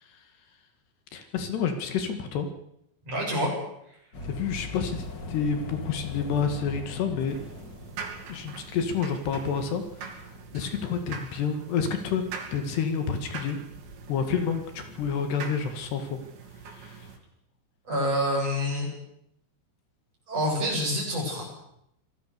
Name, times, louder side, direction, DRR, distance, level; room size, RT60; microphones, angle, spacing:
voice 1, 1.1-2.5 4.2-7.4 8.3-10.2 10.5-12.3 12.5-13.6 14.1-16.2 16.7-17.1, left 6 dB, 70° left, 7 dB, 4.0 m, -29 dB
voice 2, 3.0-3.5 17.9-18.9 20.3-21.5, equal, 35° right, -1 dB, 9.2 m, -27 dB
sound 1, 4.1-11.1, left 2 dB, 35° left, 2.1 m, -41 dB
sound 2, 7.3-17.2, right 6 dB, 90° right, 5.5 m, -43 dB
26.0 x 19.0 x 6.9 m, 0.77 s
omnidirectional pair, 5.0 m